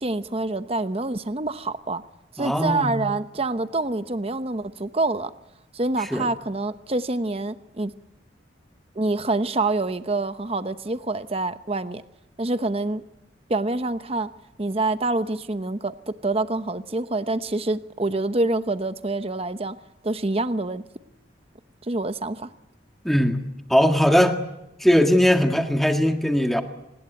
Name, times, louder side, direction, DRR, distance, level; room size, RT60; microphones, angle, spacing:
voice 1, 0.0-2.0 2.3-5.3 5.7-7.9 8.9-12.0 12.4-13.0 13.5-14.3 14.6-19.8 20.0-20.8 21.8-22.5, right 2 dB, 30° right, 11 dB, 0.9 m, -26 dB
voice 2, 2.4-3.1 6.1-6.3 23.0-23.4 23.7-24.4 24.8-26.6, equal, ahead, 5 dB, 1.7 m, -19 dB
25.5 x 20.0 x 9.1 m, 0.90 s
head